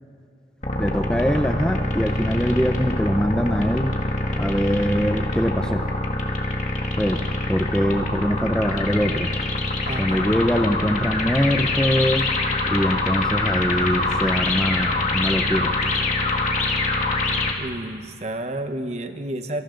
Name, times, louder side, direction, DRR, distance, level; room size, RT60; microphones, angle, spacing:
sound 1, 0.6-17.5, left 2 dB, 40° left, 1.9 m, -24 dB
voice 1, 0.8-3.9 4.4-5.8 7.0-7.2 7.5-9.3 10.0-12.3 12.7-15.7, equal, 5° left, 5 dB, 0.7 m, -23 dB
voice 2, 9.9-10.4 17.6-19.6, right 1 dB, 35° right, 7 dB, 1.1 m, -31 dB
27.0 x 25.0 x 3.9 m, 2.6 s
head